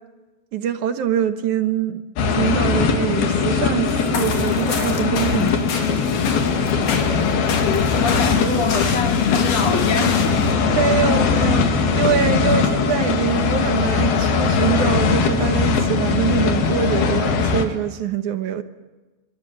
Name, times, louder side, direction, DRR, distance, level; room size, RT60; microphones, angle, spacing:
voice 1, 0.5-2.0 2.3-5.9 10.7-18.6, right 9 dB, 65° right, 2.3 m, -24 dB
sound 1, 2.2-17.7, left 5 dB, 90° left, 4.0 m, -20 dB
sound 2, 3.9-10.5, left 5 dB, 65° left, 4.4 m, -30 dB
voice 2, 7.6-10.4, left 5 dB, 50° left, 3.5 m, -24 dB
29.5 x 24.0 x 7.9 m
omnidirectional pair, 4.2 m